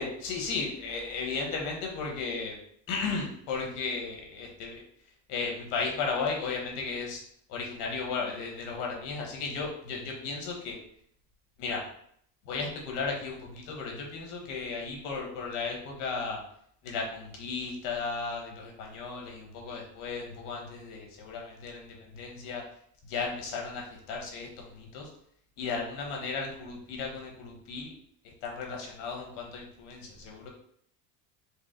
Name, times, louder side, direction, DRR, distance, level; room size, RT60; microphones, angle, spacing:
voice 1, 0.0-2.5 2.9-4.8 5.3-7.2 7.5-10.8 11.6-11.8 12.4-16.4 16.8-22.6 23.1-25.1 25.6-27.9 28.4-30.5, left 4 dB, 85° left, 0 dB, 1.4 m, -35 dB
4.8 x 2.1 x 3.8 m, 0.67 s
cardioid pair, 140°, 44 cm